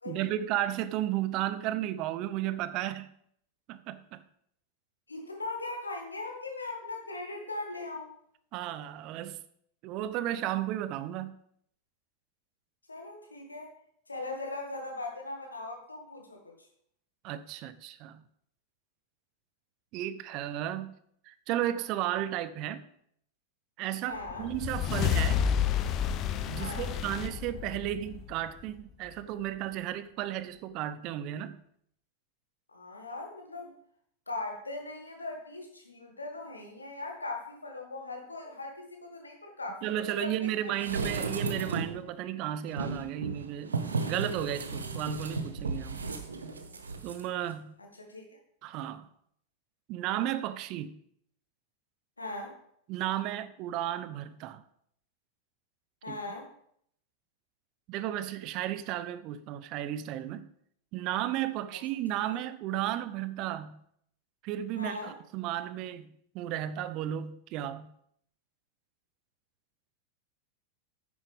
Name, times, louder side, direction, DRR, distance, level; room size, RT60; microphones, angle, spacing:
voice 1, 0.1-3.1 3.7-4.2 8.5-9.4 9.8-11.4 17.2-18.2 19.9-21.0 21.2-22.9 23.8-25.5 26.5-31.6 39.8-46.1 47.0-47.7 48.6-49.1 49.9-51.0 52.9-54.6 56.1-56.2 57.9-60.5 60.9-63.8 64.4-67.9, right 12 dB, 40° right, 0.6 m, -34 dB
voice 2, 5.1-8.1 12.9-13.7 14.1-16.5 24.0-24.5 26.6-26.9 32.7-33.7 34.3-39.9 40.2-40.8 47.8-48.4 52.2-52.5 56.0-56.5 62.3-62.4 64.8-65.1, left 2 dB, 80° left, 2.0 m, -39 dB
sound 1, 24.2-28.8, left 8 dB, 35° left, 0.7 m, -30 dB
sound 2, 40.8-42.0 42.7-47.2 47.5-47.6, right 4 dB, 75° right, 0.9 m, -34 dB
9.7 x 9.5 x 3.6 m
figure-of-eight pair, 90°, 0 cm